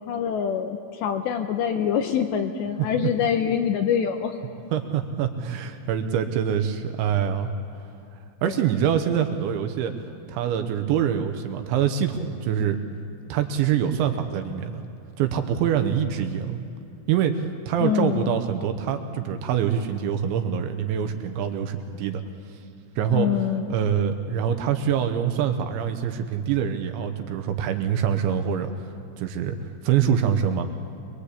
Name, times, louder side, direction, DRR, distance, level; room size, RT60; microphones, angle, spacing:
voice 1, 0.0-4.4 8.4-8.5 17.8-18.4 23.1-23.8, left 8 dB, 80° left, 6 dB, 2.7 m, -25 dB
voice 2, 4.7-7.5 8.4-10.0 10.3-12.8 13.3-14.8 15.2-16.6 17.1-22.2 23.0-23.3 23.7-28.7 29.2-29.6 29.8-30.7, right 8 dB, 75° right, 7 dB, 3.1 m, -25 dB
23.5 x 22.5 x 8.4 m, 2.5 s
omnidirectional pair, 5.8 m